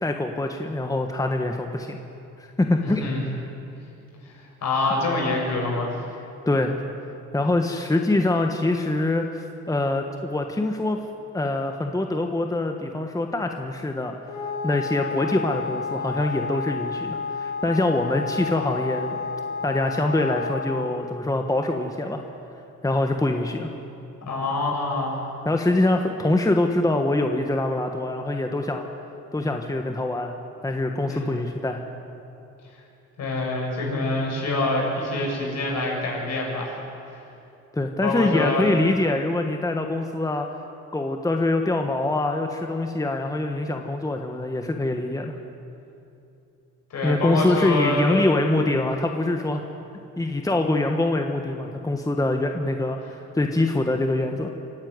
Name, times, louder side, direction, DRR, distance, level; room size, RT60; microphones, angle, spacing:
voice 1, 0.0-2.0 2.6-3.0 6.5-6.8 7.3-11.0 11.3-14.1 14.6-19.1 19.6-22.2 22.8-23.7 25.4-28.9 29.3-30.3 30.6-31.8 37.7-40.5 40.9-45.3 47.0-49.6 50.2-53.0 53.3-54.5, left 2 dB, 10° left, 4 dB, 1.4 m, -24 dB
voice 2, 2.8-3.2 4.2-6.0 24.3-25.2 31.1-31.3 33.2-36.8 38.0-38.7 46.9-48.5 53.0-53.1, left 2 dB, 60° left, -1 dB, 7.1 m, -26 dB
Wind instrument woodwind instrument, 14.2-20.9, left 5 dB, 75° left, 7.1 m, -31 dB
26.5 x 11.5 x 9.5 m, 2.7 s
cardioid pair, 90°, 30 cm